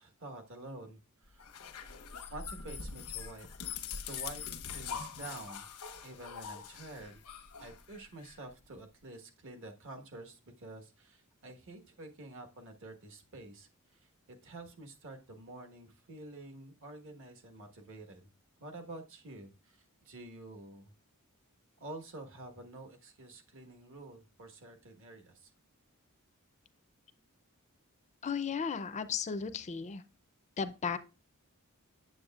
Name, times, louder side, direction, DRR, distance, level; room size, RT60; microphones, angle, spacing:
voice 1, 0.0-1.5 2.3-3.5 4.1-4.4 4.7-5.7 6.0-7.2 7.6-14.1 14.4-18.2 18.6-20.9 21.8-25.5, right 2 dB, 60° right, 1.3 m, -48 dB
sound 1, 1.4-8.3, left 6 dB, 90° left, 0.9 m, -43 dB
voice 2, 28.2-30.0 30.6-31.0, left 6 dB, 30° left, 0.4 m, -35 dB
7.9 x 7.4 x 2.3 m
head